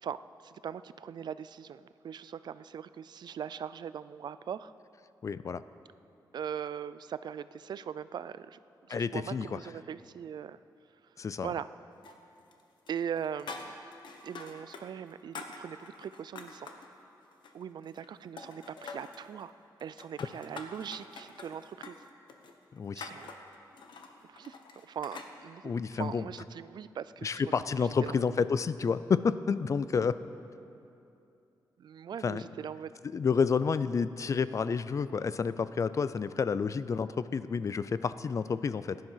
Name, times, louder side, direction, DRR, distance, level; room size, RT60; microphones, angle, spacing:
voice 1, 0.0-4.7 6.3-8.6 8.9-10.6 11.4-11.7 12.9-13.8 14.2-16.7 17.5-19.5 19.8-22.0 22.9-23.3 24.3-28.4 31.8-32.9, right 8 dB, 65° right, 15 dB, 0.4 m, -40 dB
voice 2, 5.2-5.6 8.9-9.6 11.2-11.5 22.7-23.1 25.6-26.3 27.2-30.2 32.2-32.4 33.1-39.0, left 5 dB, 40° left, 15 dB, 0.4 m, -30 dB
sound 1, 12.0-12.6 12.9-14.8 15.1-16.9 17.3-18.1 18.4-19.2 19.8-25.3, left 4 dB, 80° left, 1.1 m, -46 dB
15.5 x 10.5 x 5.7 m, 2.7 s
wide cardioid pair, 125°, 8 cm